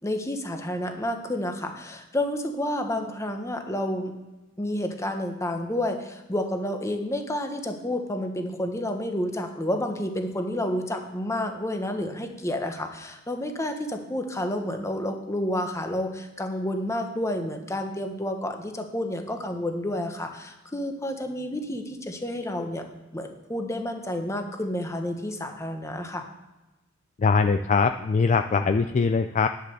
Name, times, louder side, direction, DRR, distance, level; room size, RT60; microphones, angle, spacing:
voice 1, 0.0-4.1 4.6-22.8 23.1-26.2, left 1 dB, 15° left, 5 dB, 1.1 m, -30 dB
voice 2, 27.2-29.5, left 4 dB, 35° left, 8 dB, 0.3 m, -22 dB
10.0 x 6.5 x 6.8 m, 1.1 s
head